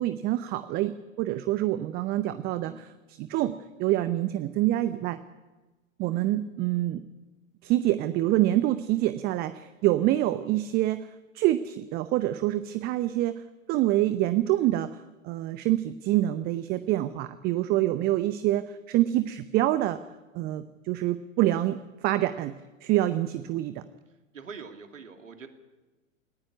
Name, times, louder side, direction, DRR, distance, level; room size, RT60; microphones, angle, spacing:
voice 1, 0.0-5.2 6.0-7.0 7.6-11.1 11.3-13.4 13.7-20.0 20.3-23.8, right 15 dB, 25° right, 13 dB, 0.7 m, -26 dB
voice 2, 24.3-25.5, right 5 dB, 70° right, 6 dB, 2.6 m, -45 dB
18.5 x 16.5 x 9.7 m, 1.2 s
figure-of-eight pair, 100°, 39 cm